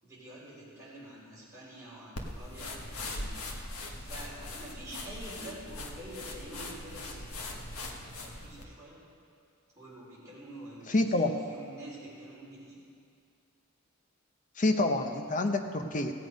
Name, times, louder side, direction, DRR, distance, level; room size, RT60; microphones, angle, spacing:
voice 1, 0.0-3.4 4.0-9.0 9.7-12.8, right 1 dB, 15° right, -8 dB, 3.7 m, -47 dB
sound 1, 2.2-8.7, left 2 dB, 75° left, 1.3 m, -41 dB
voice 2, 10.9-11.3 14.6-16.1, left 2 dB, 35° left, 5 dB, 0.7 m, -27 dB
16.5 x 8.3 x 5.2 m, 2.3 s
head